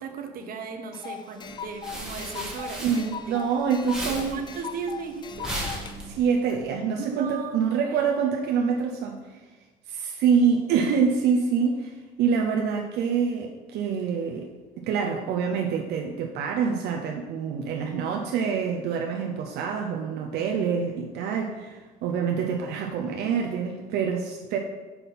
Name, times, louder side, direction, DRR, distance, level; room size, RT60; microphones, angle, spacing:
voice 1, 0.0-3.0 4.1-5.7 7.0-8.1, right 5 dB, 60° right, 5 dB, 0.9 m, -37 dB
sound 1, 0.9-6.0, left 7 dB, 25° left, 0.3 m, -39 dB
sound 2, 1.5-3.5 3.8-6.5, equal, 5° right, 1.8 m, -35 dB
voice 2, 2.8-4.4 6.0-9.4 9.9-14.5 14.8-24.6, right 6 dB, 80° right, 1 dB, 0.6 m, -26 dB
5.8 x 5.4 x 4.2 m, 1.3 s
cardioid pair, 110°, 17 cm